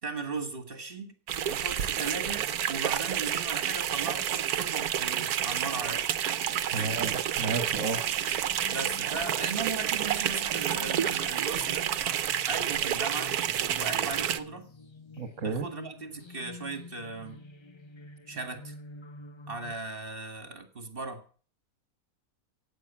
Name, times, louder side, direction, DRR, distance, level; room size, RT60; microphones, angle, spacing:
voice 1, 0.0-1.2 1.5-6.1 6.7-7.1 8.7-11.9 12.5-13.3 13.8-14.7 15.4-17.4 18.3-18.8 19.5-21.2, right 4 dB, 35° right, 7 dB, 2.1 m, -37 dB
sound 1, 1.3-14.4, right 10 dB, 75° right, 1.3 m, -29 dB
voice 2, 6.7-8.0 15.2-15.7, right 4 dB, 55° right, 8 dB, 1.6 m, -32 dB
sound 2, 8.4-19.7, left 3 dB, 30° left, 0.5 m, -49 dB
14.5 x 9.2 x 7.2 m, 0.43 s
omnidirectional pair, 1.6 m